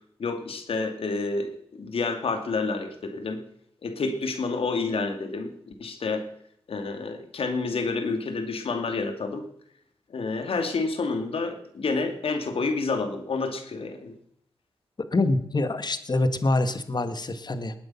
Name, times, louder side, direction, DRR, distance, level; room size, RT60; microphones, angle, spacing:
voice 1, 0.2-3.4 3.8-5.5 5.8-6.3 6.7-9.4 10.1-14.1, left 3 dB, 75° left, 6 dB, 2.4 m, -29 dB
voice 2, 15.0-17.7, left 2 dB, 45° left, 10 dB, 1.7 m, -25 dB
20.5 x 8.8 x 5.8 m, 0.72 s
cardioid pair, 45°, 10 cm